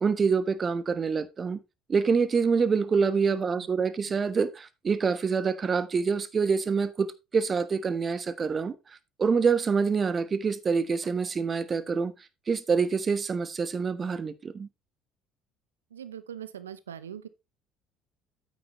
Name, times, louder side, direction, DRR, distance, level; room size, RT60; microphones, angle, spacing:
voice 1, 0.0-1.6 1.9-8.7 9.2-12.1 12.5-14.7, right 5 dB, 35° right, 1.2 m, -26 dB
voice 2, 15.9-17.3, right 9 dB, 90° right, 0.7 m, -41 dB
9.1 x 8.5 x 3.1 m
hypercardioid pair, 60°, 0 cm